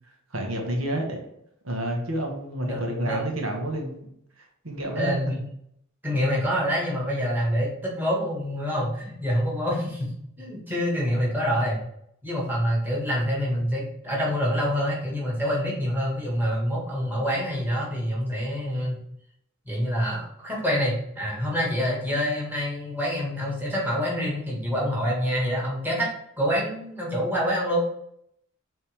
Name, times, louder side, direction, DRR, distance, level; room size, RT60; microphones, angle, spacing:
voice 1, 0.3-1.2 1.6-4.1 4.4-5.1, right 1 dB, 90° right, 1 dB, 1.5 m, -30 dB
voice 2, 2.6-3.2 5.0-5.4 6.0-10.1 10.4-11.8 12.2-19.0 19.7-26.1 26.4-27.8, equal, 10° right, -4 dB, 1.9 m, -26 dB
7.4 x 3.9 x 3.6 m, 0.71 s
head